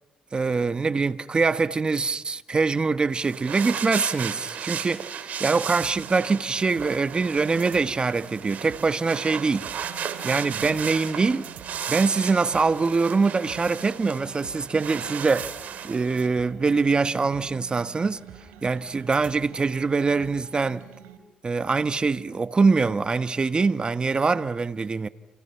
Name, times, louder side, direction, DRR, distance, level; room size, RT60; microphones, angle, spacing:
voice 1, 0.3-9.7 10.2-11.5 11.9-15.5 15.8-18.2 18.6-20.8 21.4-25.1, right 4 dB, 35° right, 1.3 m, -24 dB
sound 1, 3.1-16.3, right 8 dB, 65° right, 2.8 m, -35 dB
sound 2, 5.8-21.2, right 9 dB, 90° right, 3.1 m, -47 dB
28.5 x 28.5 x 5.8 m
cardioid pair, 70°, 3 cm